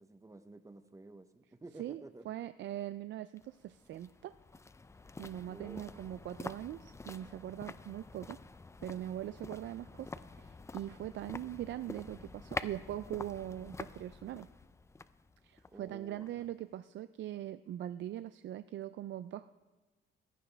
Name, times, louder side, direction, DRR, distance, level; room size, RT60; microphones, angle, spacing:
voice 1, 0.0-2.3 5.4-6.1 15.7-16.5, right 2 dB, 15° right, 10 dB, 0.8 m, -52 dB
voice 2, 1.8-4.3 5.2-8.4 8.8-14.5 15.4-19.5, right 12 dB, 65° right, 13 dB, 0.4 m, -42 dB
sound 1, 3.4-16.5 16.8-16.9, left 3 dB, 15° left, 0.4 m, -47 dB
15.5 x 11.0 x 3.4 m, 1.3 s
cardioid pair, 90°, 20 cm